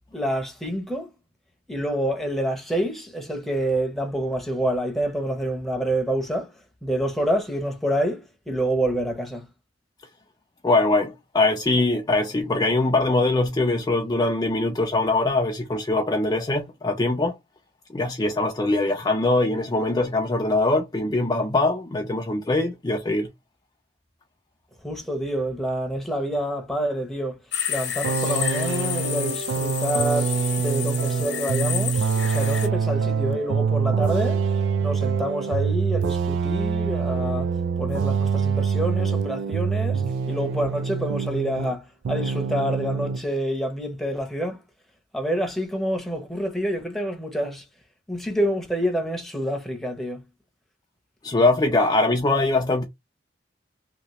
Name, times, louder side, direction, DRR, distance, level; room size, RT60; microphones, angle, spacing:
voice 1, 0.1-1.1 1.7-6.5 6.8-9.5 24.8-27.4 27.7-44.6 45.1-47.6 48.1-50.2, right 1 dB, ahead, 0.8 m, -27 dB
voice 2, 10.6-17.4 17.9-23.3 51.2-52.8, left 2 dB, 20° left, 0.4 m, -22 dB
sound 1, 27.5-32.7, left 9 dB, 75° left, 0.9 m, -30 dB
sound 2, 28.0-41.8 42.0-43.2, right 6 dB, 85° right, 0.3 m, -25 dB
2.9 x 2.8 x 3.0 m
head